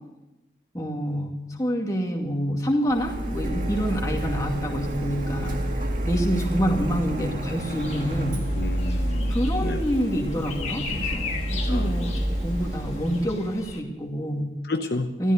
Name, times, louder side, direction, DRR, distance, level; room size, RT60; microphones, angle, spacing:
voice 1, 0.7-5.6 6.0-8.5 9.3-14.5 15.2-15.3, equal, 20° left, 0 dB, 2.3 m, -27 dB
Printer, 2.9-13.2, equal, 45° right, 1.9 m, -29 dB
sound 1, 7.6-13.8, left 4 dB, 35° left, 1.5 m, -37 dB
voice 2, 8.5-9.9 11.7-12.1 14.6-15.1, left 2 dB, 60° left, 5 dB, 0.8 m, -31 dB
13.5 x 13.5 x 6.6 m, 1.0 s
head